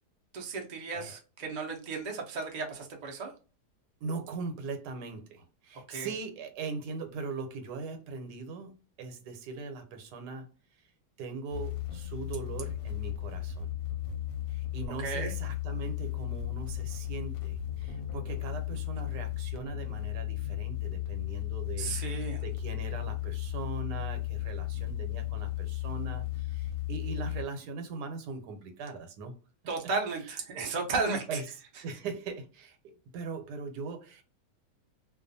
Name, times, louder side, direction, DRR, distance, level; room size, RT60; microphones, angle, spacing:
voice 1, 0.3-3.3 5.9-6.1 15.0-15.3 21.8-22.4 29.7-31.4, right 4 dB, 65° right, 0.4 m, -34 dB
voice 2, 4.0-10.5 11.2-13.7 14.5-29.3 30.2-30.4 31.3-31.6 31.8-34.2, right 4 dB, 85° right, 1.2 m, -40 dB
sound 1, 11.5-27.4, left 14 dB, 70° left, 0.9 m, -35 dB
2.5 x 2.3 x 2.5 m
omnidirectional pair, 1.7 m